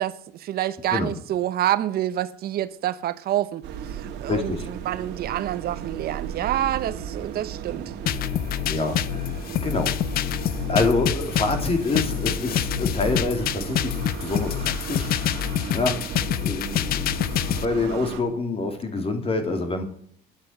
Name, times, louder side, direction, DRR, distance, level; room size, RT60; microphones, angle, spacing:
voice 1, 0.0-7.9, right 12 dB, 65° right, 0.8 m, -27 dB
sound 1, 3.6-18.2, right 8 dB, 90° right, 1.8 m, -35 dB
voice 2, 4.3-4.7 8.6-9.3 9.6-9.9 10.7-13.9 14.2-15.1 15.7-16.0 16.3-17.0 17.5-19.8, left 3 dB, 35° left, 2.8 m, -26 dB
sound 2, 8.1-17.7, left 12 dB, 65° left, 0.6 m, -27 dB
10.5 x 7.7 x 8.5 m
cardioid pair, 110°, 17 cm